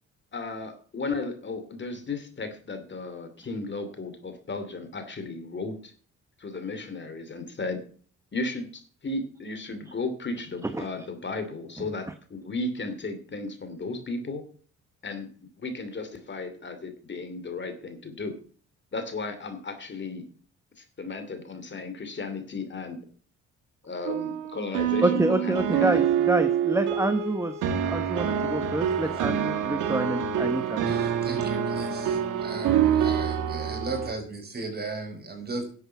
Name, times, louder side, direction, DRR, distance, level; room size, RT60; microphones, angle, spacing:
voice 1, 0.3-5.9 6.4-7.8 8.3-14.4 15.0-18.3 18.9-20.2 20.8-23.0 23.9-26.0, left 3 dB, 40° left, 9 dB, 2.7 m, -34 dB
sound 1, 24.0-34.1, right 8 dB, 80° right, 1.8 m, -26 dB
voice 2, 25.0-27.5 27.9-30.8, right 2 dB, 10° right, 9 dB, 1.0 m, -27 dB
voice 3, 30.9-35.6, right 3 dB, 30° right, 3 dB, 5.3 m, -36 dB
11.0 x 8.0 x 7.0 m, 0.44 s
cardioid pair, 90°, 30 cm